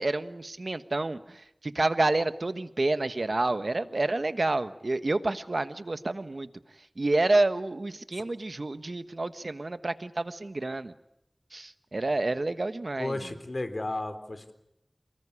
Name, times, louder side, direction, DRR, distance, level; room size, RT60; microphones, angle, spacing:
voice 1, 0.0-6.5 7.0-10.9 11.5-13.2, right 2 dB, 65° right, 11 dB, 1.3 m, -29 dB
voice 2, 13.0-14.5, left 2 dB, 55° left, 9 dB, 3.7 m, -33 dB
29.0 x 19.5 x 10.0 m, 0.81 s
wide cardioid pair, 50°, 0 cm